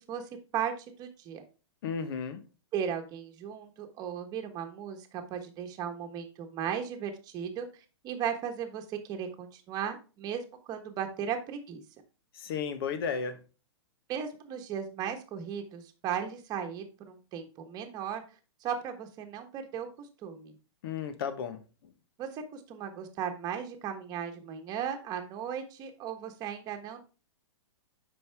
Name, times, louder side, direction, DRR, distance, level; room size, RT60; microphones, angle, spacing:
voice 1, 0.1-1.4 2.7-7.7 8.0-11.8 14.1-18.2 18.6-20.5 22.2-27.0, right 8 dB, 25° right, 1.3 m, -36 dB
voice 2, 1.8-2.4 12.4-13.4 20.8-21.6, left 6 dB, 55° left, 1.2 m, -33 dB
7.8 x 5.6 x 3.5 m
hypercardioid pair, 140°, 14 cm